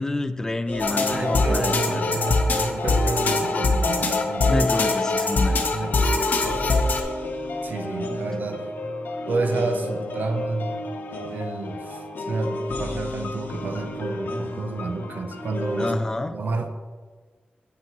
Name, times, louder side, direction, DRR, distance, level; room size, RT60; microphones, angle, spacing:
voice 1, 0.0-2.0 4.5-6.3 15.8-16.4, left 2 dB, 15° left, 9 dB, 0.4 m, -28 dB
sound 1, 0.7-15.9, left 1 dB, 85° left, 0.9 m, -32 dB
sound 2, 0.8-7.0, left 3 dB, 55° left, 0.9 m, -23 dB
voice 2, 1.1-4.5 5.7-6.1 7.6-8.6 9.3-10.8 11.3-16.0 16.3-16.7, right 3 dB, 60° right, 6 dB, 0.7 m, -30 dB
9.2 x 8.5 x 3.0 m, 1.5 s
wide cardioid pair, 160°, 3 cm